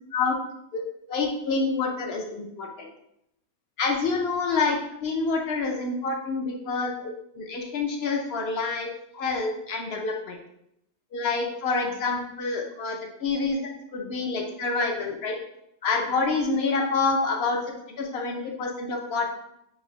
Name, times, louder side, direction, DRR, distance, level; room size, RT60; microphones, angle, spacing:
voice 1, 1.1-2.9 3.8-7.1 7.5-8.9 9.1-10.4 11.1-13.6 13.9-15.3 15.8-17.6 18.0-19.3, left 4 dB, 65° left, 1 dB, 0.6 m, -27 dB
3.9 x 2.7 x 3.0 m, 0.79 s
omnidirectional pair, 1.5 m